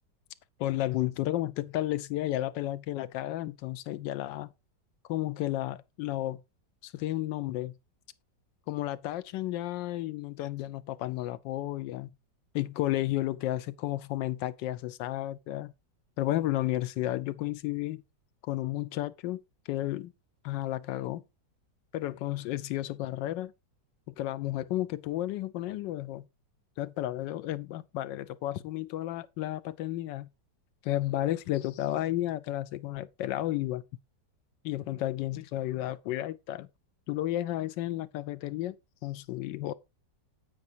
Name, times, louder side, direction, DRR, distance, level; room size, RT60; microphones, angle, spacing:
voice 1, 0.6-4.5 5.1-6.4 6.8-7.7 8.7-12.1 12.5-15.7 16.2-18.0 18.4-19.4 19.7-20.1 20.4-21.2 21.9-23.5 24.2-26.2 26.8-30.3 30.8-33.8 34.6-36.7 37.1-38.8 39.0-39.7, left 14 dB, 85° left, 1.3 m, -32 dB
9.4 x 7.7 x 2.7 m
omnidirectional pair, 1.9 m